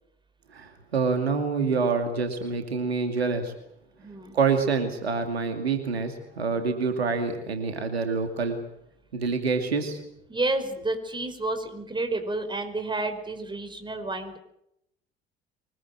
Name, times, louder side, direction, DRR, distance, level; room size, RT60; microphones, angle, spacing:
voice 1, 0.5-3.5 4.3-8.6 9.1-10.0, right 4 dB, 80° right, 6 dB, 2.6 m, -26 dB
voice 2, 4.0-4.4 10.3-14.4, right 2 dB, 15° right, 7 dB, 5.3 m, -30 dB
24.5 x 21.5 x 7.9 m, 0.77 s
figure-of-eight pair, 55°, 31 cm